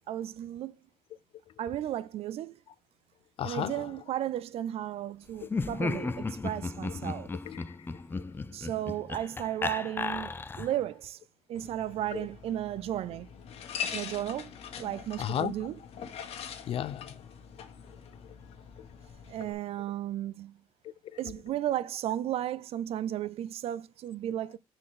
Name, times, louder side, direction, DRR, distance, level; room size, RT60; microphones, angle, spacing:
voice 1, 0.1-0.8 1.6-2.6 3.4-7.3 8.5-11.2 11.5-13.3 13.9-14.5 14.8-15.7 19.3-20.5 21.2-24.6, right 12 dB, 80° right, 0.5 m, -34 dB
voice 2, 3.4-3.9 5.4-5.5 6.9-7.0 7.4-8.3 12.1-12.3 15.2-15.7 16.7-17.2 18.2-18.4 18.8-18.9 19.4-19.6 20.8-21.3, left 10 dB, 65° left, 0.7 m, -36 dB
Laughter, 5.4-10.9, left 3 dB, 20° left, 0.6 m, -35 dB
sound 1, 11.5-19.5, left 7 dB, 80° left, 1.6 m, -43 dB
9.7 x 4.5 x 3.8 m
cardioid pair, 135°, 10 cm